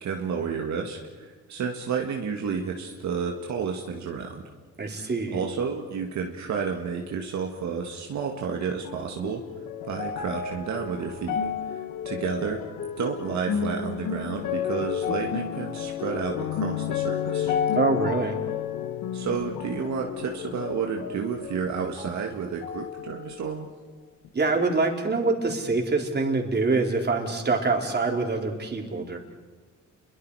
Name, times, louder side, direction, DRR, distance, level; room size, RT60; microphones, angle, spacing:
voice 1, 0.0-4.4 4.8-9.4 9.8-11.4 11.7-12.6 13.0-17.5 19.1-23.7, right 6 dB, 65° right, 1 dB, 2.0 m, -31 dB
voice 2, 4.8-5.4 17.8-18.4 24.3-29.2, right 3 dB, 35° right, 2 dB, 4.0 m, -25 dB
sound 1, 8.8-22.3 22.6-23.6 24.2-24.3, left 8 dB, 85° left, 1.5 m, -31 dB
29.5 x 23.0 x 4.9 m, 1.4 s
cardioid pair, 90°, 30 cm